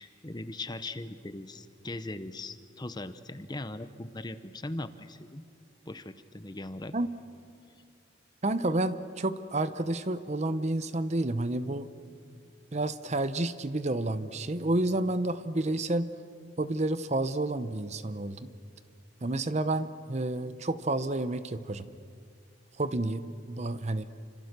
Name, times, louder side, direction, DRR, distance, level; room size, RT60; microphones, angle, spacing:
voice 1, 0.0-5.4 5.9-6.9, left 2 dB, 20° left, 12 dB, 0.8 m, -39 dB
voice 2, 8.4-11.9 12.7-16.1 16.6-18.4 19.2-21.9 22.8-24.1, right 2 dB, 35° right, 13 dB, 0.8 m, -30 dB
29.0 x 25.5 x 6.7 m, 2.3 s
head